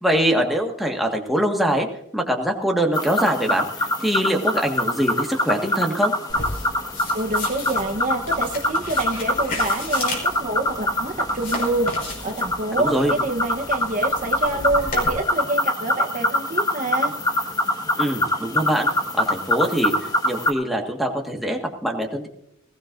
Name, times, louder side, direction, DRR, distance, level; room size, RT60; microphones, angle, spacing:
voice 1, 0.0-1.9 2.1-3.6 4.0-6.1 12.8-13.1 18.0-18.9 19.2-19.9 20.2-22.3, equal, ahead, 1 dB, 1.6 m, -23 dB
sound 1, 2.9-20.5, left 1 dB, 20° left, 1.6 m, -24 dB
sound 2, 6.3-15.1, left 2 dB, 45° left, 5.3 m, -34 dB
voice 2, 7.1-11.9 12.2-17.1, right 2 dB, 40° right, 3 dB, 1.0 m, -26 dB
20.5 x 17.0 x 2.6 m, 0.78 s
head